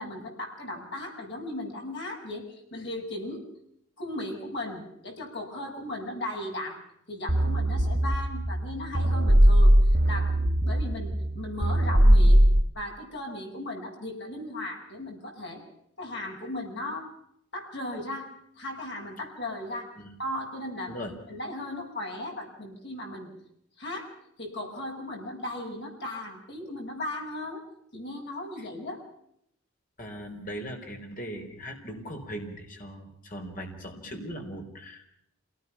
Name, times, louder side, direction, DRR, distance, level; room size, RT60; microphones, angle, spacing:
voice 1, 0.0-3.4 4.0-6.8 7.1-9.7 10.0-10.4 10.6-12.4 12.7-15.6 16.0-17.1 17.5-18.3 18.6-19.9 20.2-20.9 21.3-23.3 23.8-24.1 24.4-27.6 27.9-29.0, left 1 dB, 55° left, 1 dB, 7.9 m, -36 dB
sound 1, 7.3-12.6, equal, 55° right, 3.1 m, -20 dB
voice 2, 30.0-35.1, equal, 40° left, 3 dB, 5.0 m, -39 dB
28.0 x 19.0 x 5.8 m, 0.75 s
head